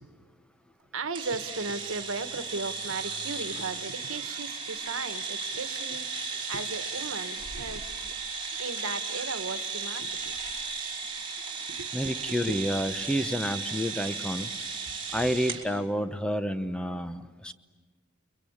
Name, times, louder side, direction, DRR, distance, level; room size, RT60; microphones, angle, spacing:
voice 1, 0.9-8.2 8.6-10.4 11.7-12.6, right 4 dB, 90° right, 10 dB, 1.3 m, -36 dB
sound 1, 1.1-15.6, right 4 dB, 25° right, 3.3 m, -35 dB
voice 2, 11.9-14.5 15.1-17.5, equal, 5° left, 10 dB, 0.8 m, -29 dB
29.5 x 23.0 x 8.6 m, 1.5 s
head